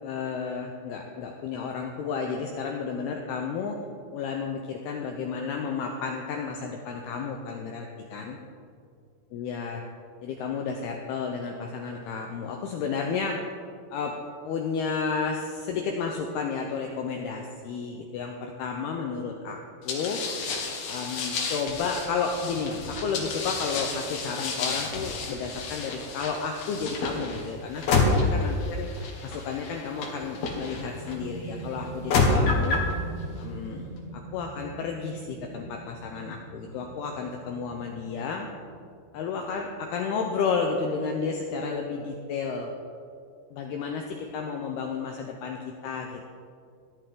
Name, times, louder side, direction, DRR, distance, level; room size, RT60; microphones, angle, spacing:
voice 1, 0.0-3.8 4.1-8.4 9.3-9.9 10.2-13.4 13.9-20.2 20.9-32.9 33.4-38.5 39.1-42.7 43.5-46.3, left 5 dB, 80° left, 2 dB, 2.3 m, -32 dB
sound 1, 19.9-31.2 31.8-32.9, left 4 dB, 60° left, 3.2 m, -29 dB
sound 2, 30.6-41.9, right 4 dB, 40° right, 3.1 m, -44 dB
18.0 x 12.0 x 3.8 m, 2.3 s
omnidirectional pair, 5.5 m